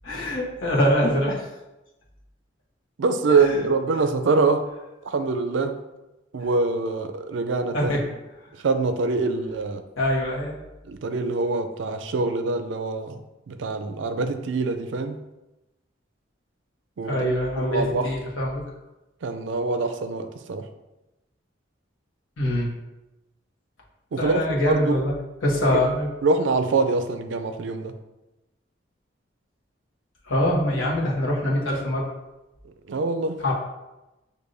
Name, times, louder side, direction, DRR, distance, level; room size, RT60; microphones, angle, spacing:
voice 1, 0.0-1.5 3.3-3.6 7.7-8.0 10.0-10.6 17.1-18.6 22.4-22.7 24.2-25.1 25.4-26.1 30.3-32.1 33.4-33.5, left 1 dB, 90° left, -3 dB, 1.1 m, -24 dB
voice 2, 3.0-4.6 5.0-5.8 6.3-7.9 8.6-9.8 10.9-15.2 17.0-18.1 19.2-20.6 24.1-24.9 26.2-27.9 32.9-33.4, right 3 dB, 70° right, 8 dB, 0.4 m, -24 dB
6.3 x 2.6 x 2.6 m, 1.0 s
head